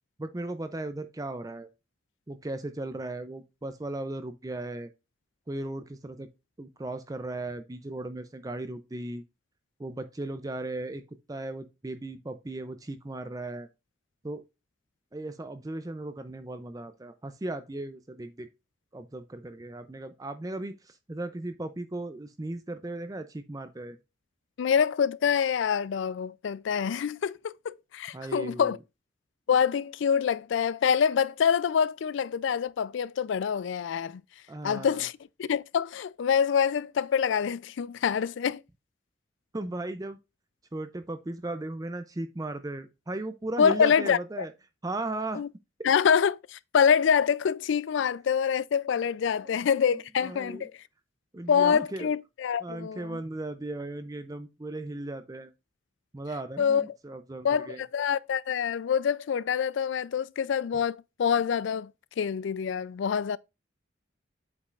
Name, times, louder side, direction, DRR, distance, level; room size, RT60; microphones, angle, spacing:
voice 1, 0.2-1.7 2.3-4.9 5.5-6.3 6.6-9.2 9.8-11.0 11.3-13.7 14.2-14.4 15.1-18.5 18.9-24.0 28.1-28.8 34.5-35.0 39.5-40.2 40.7-44.5 44.8-45.4 49.4-49.5 50.2-50.7 51.3-52.1 52.6-55.5 56.1-57.8, right 2 dB, 20° right, 0.4 m, -36 dB
voice 2, 24.6-28.8 29.5-34.2 34.6-35.1 35.4-38.6 43.6-44.2 45.3-45.5 45.8-50.7 51.5-53.2 56.6-56.9 57.4-61.9 62.2-63.4, left 7 dB, 70° left, 0.3 m, -26 dB
8.2 x 5.2 x 2.4 m
head